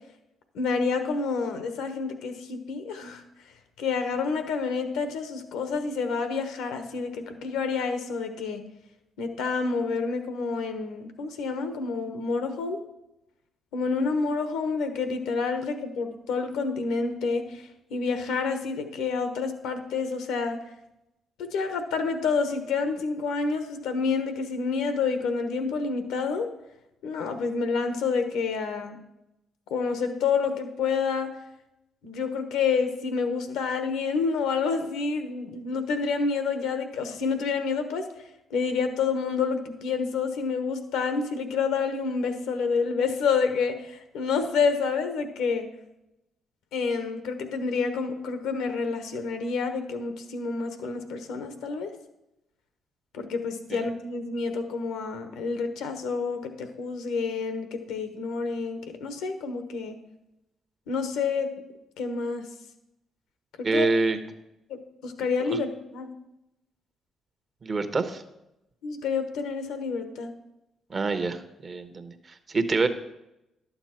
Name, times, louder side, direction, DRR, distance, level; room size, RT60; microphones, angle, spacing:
voice 1, 0.5-3.2 3.8-8.6 9.2-12.8 13.7-20.6 21.4-26.5 27.0-29.0 29.7-31.3 32.0-38.1 38.5-45.7 46.7-51.9 53.1-60.0 60.9-61.5 62.0-62.4 63.6-63.9 64.7-66.1 68.8-70.3, left 5 dB, 80° left, 8 dB, 1.1 m, -28 dB
voice 2, 63.6-64.2 65.5-65.6 67.6-68.2 70.9-72.9, right 3 dB, 45° right, 9 dB, 1.0 m, -26 dB
11.5 x 7.1 x 4.4 m, 0.89 s
hypercardioid pair, 50°, 0 cm